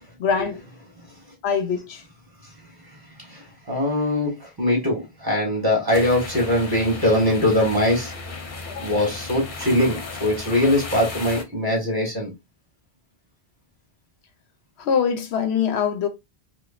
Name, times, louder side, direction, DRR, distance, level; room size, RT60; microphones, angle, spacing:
voice 1, 0.2-0.6 1.4-2.0 8.7-8.9 14.8-16.1, left 7 dB, 80° left, 0.9 m, -23 dB
voice 2, 3.2-8.1 8.8-12.3, left 1 dB, 20° right, 1.8 m, -22 dB
sound 1, 5.9-11.4, left 3 dB, 50° left, 0.9 m, -35 dB
4.8 x 2.3 x 2.4 m
omnidirectional pair, 1.1 m